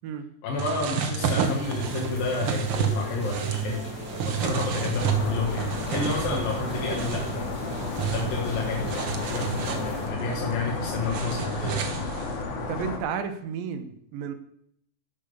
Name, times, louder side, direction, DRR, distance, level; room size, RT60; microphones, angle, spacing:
voice 1, 0.4-3.8 4.3-7.6 8.1-11.9, left 3 dB, 80° left, -2 dB, 3.4 m, -30 dB
sound 1, 0.6-12.4, right 6 dB, 65° right, 1.3 m, -31 dB
sound 2, 1.4-10.1, left 1 dB, 25° left, 5.8 m, -39 dB
sound 3, 5.0-13.0, left 3 dB, 55° left, 2.5 m, -33 dB
voice 2, 12.7-14.3, right 7 dB, 85° right, 8 dB, 2.8 m, -32 dB
11.5 x 7.5 x 6.8 m, 0.71 s
omnidirectional pair, 4.0 m